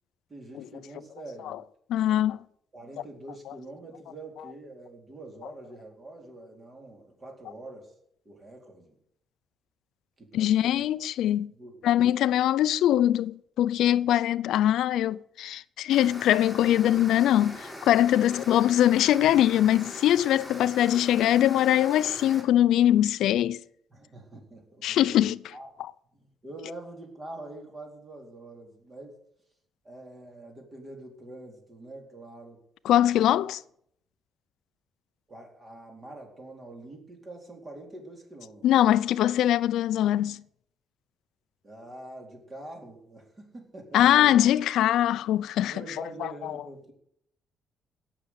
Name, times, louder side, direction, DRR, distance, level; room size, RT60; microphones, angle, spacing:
voice 1, 0.3-1.6 2.0-2.3 2.7-7.9 8.2-9.0 10.2-11.1 11.5-11.9 18.1-18.4 23.9-25.7 26.1-29.2 29.8-32.6 33.1-33.4 35.3-38.7 41.6-44.4 45.7-46.9, right 2 dB, 25° right, 4.1 m, -45 dB
voice 2, 1.9-2.4 10.3-11.5 11.8-23.6 24.8-25.4 32.8-33.6 38.6-40.4 43.9-46.3, left 12 dB, 80° left, 0.5 m, -22 dB
sound 1, 15.9-22.4, left 1 dB, 5° right, 3.8 m, -42 dB
17.5 x 6.8 x 8.1 m
cardioid pair, 145°, 0 cm